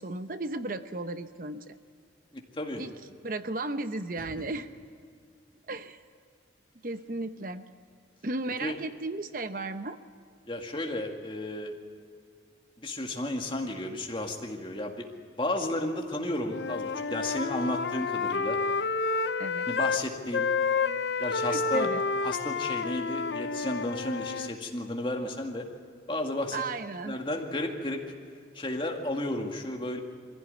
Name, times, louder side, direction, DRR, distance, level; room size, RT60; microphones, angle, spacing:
voice 1, 0.0-1.8 2.8-2.9 3.2-4.7 5.7-6.0 6.8-7.6 8.2-10.0 19.4-19.7 21.4-22.0 26.5-27.2, right 2 dB, 50° right, 10 dB, 0.8 m, -35 dB
voice 2, 8.5-8.8 10.5-11.7 12.8-15.1 15.4-18.6 19.7-20.5 21.2-21.9 22.2-25.7 26.1-26.6 27.1-28.0 28.5-30.0, left 1 dB, 25° left, 2 dB, 2.1 m, -33 dB
Wind instrument woodwind instrument, 16.5-20.0 20.3-24.5, left 4 dB, 65° left, 0.7 m, -30 dB
23.0 x 16.0 x 9.7 m, 2.2 s
head